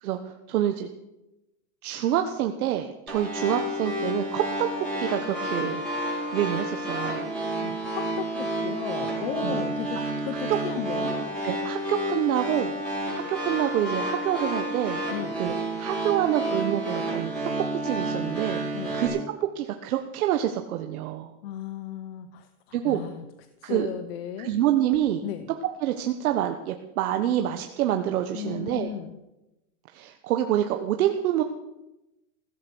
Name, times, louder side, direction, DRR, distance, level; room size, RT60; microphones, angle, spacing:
voice 1, 0.0-0.9 1.8-4.7 5.0-5.9 6.3-7.3 9.4-9.6 10.5-10.6 11.4-12.8 13.1-15.0 15.4-17.3 17.6-19.2 19.5-21.3 22.7-23.0 23.6-23.9 24.4-25.2 25.8-28.9 29.9-31.4, right 12 dB, 70° right, 6 dB, 1.3 m, -27 dB
sound 1, 3.1-19.1, right 1 dB, ahead, 6.4 m, -30 dB
voice 2, 7.6-11.2 15.1-15.4 18.7-19.0 21.4-23.2 23.6-24.5 25.2-25.5 28.3-29.1, left 12 dB, 40° left, 10 dB, 0.9 m, -35 dB
16.0 x 13.5 x 6.2 m, 0.97 s
supercardioid pair, 175°, 44 cm